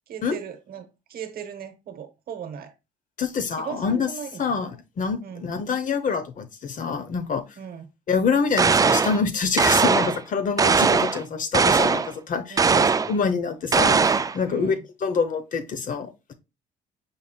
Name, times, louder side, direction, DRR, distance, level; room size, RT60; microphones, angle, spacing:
voice 1, 0.1-2.7 3.5-4.6 5.2-5.5 7.6-7.9 12.5-12.8 14.4-14.8, right 8 dB, 60° right, 0.9 m, -38 dB
voice 2, 3.2-4.1 4.4-7.4 8.1-12.6 13.1-14.7 15.0-16.3, left 5 dB, 50° left, 0.8 m, -26 dB
sound 1, 8.6-9.2 9.6-10.2 10.6-11.2 11.5-12.1 12.6-13.1 13.7-14.4, right 5 dB, 20° right, 0.3 m, -19 dB
5.5 x 3.6 x 2.3 m
supercardioid pair, 70°, 18 cm